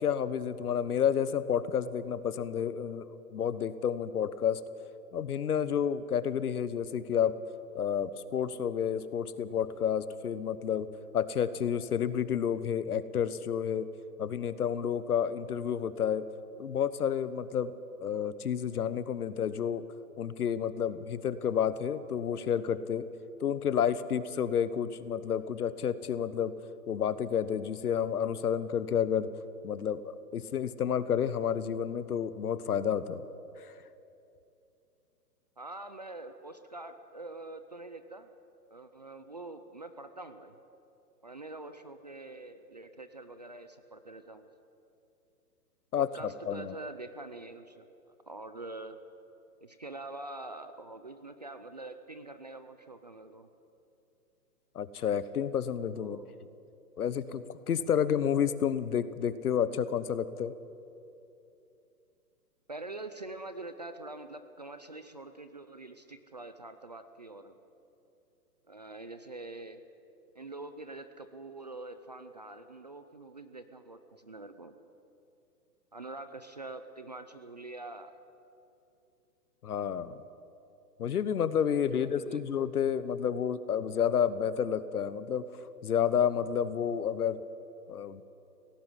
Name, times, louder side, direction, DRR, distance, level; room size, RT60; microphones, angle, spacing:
voice 1, 0.0-4.6 5.1-7.4 7.7-13.9 14.2-16.3 16.6-17.7 18.0-19.8 20.2-23.1 23.4-26.5 26.9-29.3 29.6-33.2 33.6-33.7 45.9-46.1 46.5-46.7 54.7-56.2 57.0-60.5 79.6-80.2 81.0-85.4 85.8-87.4 87.9-88.2, left 8 dB, 65° left, 15 dB, 1.2 m, -30 dB
voice 2, 35.6-38.3 38.7-40.6 41.2-44.5 45.9-47.9 48.3-49.0 49.6-53.5 56.0-56.3 62.7-67.6 68.7-69.8 70.3-74.8 75.9-78.1 81.7-82.4, right 2 dB, 30° right, 10 dB, 0.5 m, -45 dB
17.5 x 15.0 x 9.9 m, 2.7 s
hypercardioid pair, 155°, 48 cm